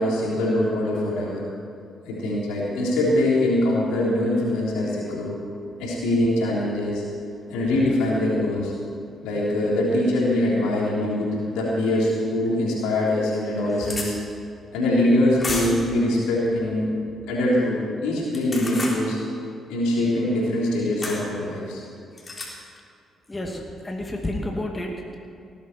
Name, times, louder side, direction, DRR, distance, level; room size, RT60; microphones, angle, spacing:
voice 1, 0.0-1.4 2.0-5.3 5.8-7.0 7.5-8.7 9.2-14.1 14.7-16.9 17.3-19.2 19.7-21.8, left 1 dB, 75° left, -5 dB, 3.2 m, -23 dB
sound 1, 12.5-12.6 13.1-13.2 13.4-14.1 15.4-15.9 18.2-19.0 21.0-21.2 22.2-22.5, left 2 dB, 35° left, 3.7 m, -31 dB
voice 2, 23.3-25.1, left 1 dB, 20° left, 0 dB, 2.3 m, -30 dB
18.0 x 11.0 x 4.5 m, 2.5 s
hypercardioid pair, 45°, 0 cm